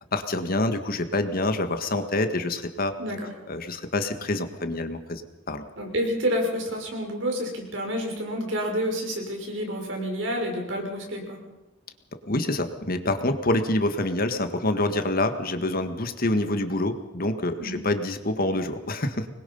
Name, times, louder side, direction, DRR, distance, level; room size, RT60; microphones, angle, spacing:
voice 1, 0.1-2.9 3.5-5.2 5.5-5.7 12.1-19.3, left 2 dB, 50° left, 8 dB, 1.7 m, -26 dB
voice 2, 3.0-3.3 5.8-11.4 17.6-17.8, equal, 75° right, 1 dB, 5.9 m, -29 dB
25.5 x 21.0 x 5.6 m, 0.95 s
head